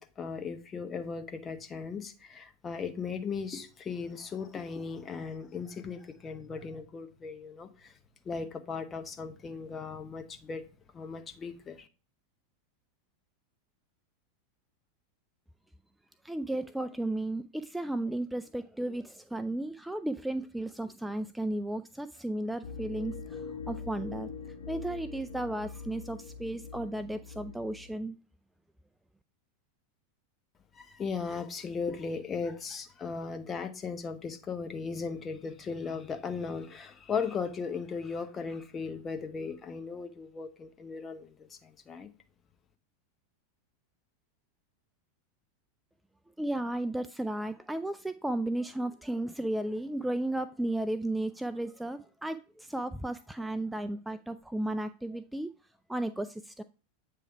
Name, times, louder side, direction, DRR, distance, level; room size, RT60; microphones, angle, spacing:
voice 1, 0.0-7.9 8.2-10.6 10.9-11.9 30.7-42.1, left 5 dB, 25° left, 0.9 m, -37 dB
voice 2, 16.2-24.3 24.7-28.2 46.4-55.5 55.9-56.6, right 1 dB, 5° right, 0.3 m, -34 dB
sound 1, 22.6-27.9, left 5 dB, 65° left, 1.3 m, -43 dB
8.3 x 3.4 x 4.5 m
hypercardioid pair, 90°, 0 cm